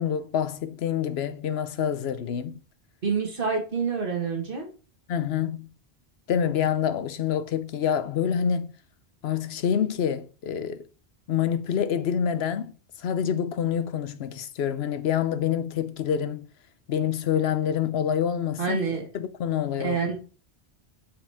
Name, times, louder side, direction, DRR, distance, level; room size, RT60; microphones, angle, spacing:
voice 1, 0.0-2.6 5.1-5.7 6.3-8.7 9.2-10.8 11.3-12.7 13.0-16.5 16.9-18.8 19.1-20.0, left 8 dB, 80° left, 0.9 m, -27 dB
voice 2, 3.0-4.7 18.6-19.1 19.8-20.1, right 5 dB, 55° right, 1.9 m, -27 dB
7.2 x 5.1 x 3.4 m
omnidirectional pair, 1.1 m